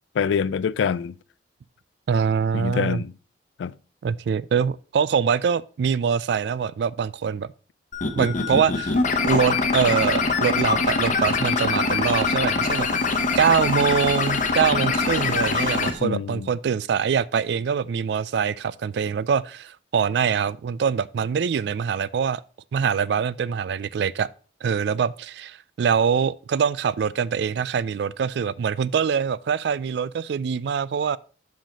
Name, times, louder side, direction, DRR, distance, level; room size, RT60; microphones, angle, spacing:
voice 1, 0.2-1.1 2.5-3.1 3.6-3.7 16.0-16.5, left 6 dB, 75° left, 0.3 m, -25 dB
voice 2, 2.1-3.0 4.0-7.5 8.2-9.0 9.2-12.9 13.4-22.4 22.7-24.3 24.6-31.2, right 6 dB, 60° right, 0.3 m, -24 dB
sound 1, 7.9-15.9, left 4 dB, 40° left, 0.8 m, -23 dB
5.7 x 5.1 x 5.0 m
head